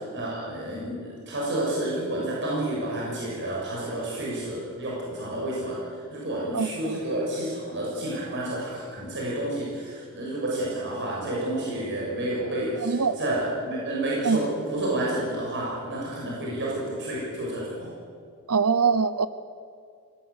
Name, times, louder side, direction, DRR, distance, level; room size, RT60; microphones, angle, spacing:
voice 1, 0.1-5.8 6.1-17.9, right 1 dB, 55° right, -4 dB, 6.7 m, -30 dB
voice 2, 6.5-7.0 12.8-13.2 14.2-14.4 18.5-19.3, right 5 dB, 80° right, 13 dB, 0.8 m, -23 dB
25.5 x 17.5 x 8.3 m, 2.3 s
head